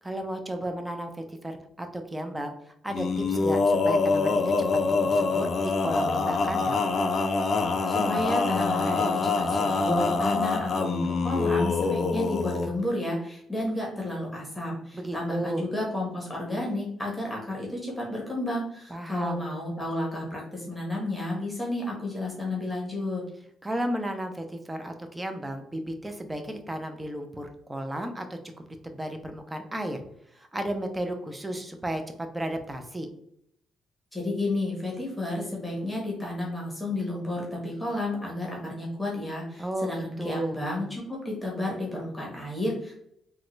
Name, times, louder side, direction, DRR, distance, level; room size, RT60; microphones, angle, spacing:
voice 1, 0.0-4.5 4.9-6.8 14.9-15.6 18.9-19.4 23.6-30.0 30.3-33.1 39.6-40.6, right 1 dB, 10° right, 5 dB, 0.6 m, -34 dB
Male singing, 2.9-12.7, left 3 dB, 50° left, 0.4 m, -25 dB
voice 2, 7.9-23.2 34.1-43.0, left 1 dB, 5° left, -3 dB, 1.1 m, -31 dB
3.6 x 2.2 x 3.1 m, 0.73 s
cardioid pair, 90°, 0 cm